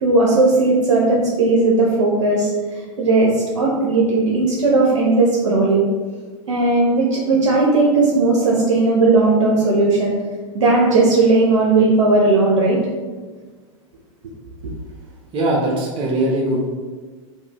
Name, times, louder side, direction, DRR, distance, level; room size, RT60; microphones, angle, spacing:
voice 1, 0.0-2.5 3.0-5.8 6.5-10.1 10.5-12.8, right 3 dB, 80° right, -4 dB, 0.9 m, -16 dB
voice 2, 15.3-16.7, right 1 dB, 35° right, -3 dB, 0.9 m, -20 dB
4.7 x 2.9 x 3.6 m, 1.4 s
hypercardioid pair, 105°, 17 cm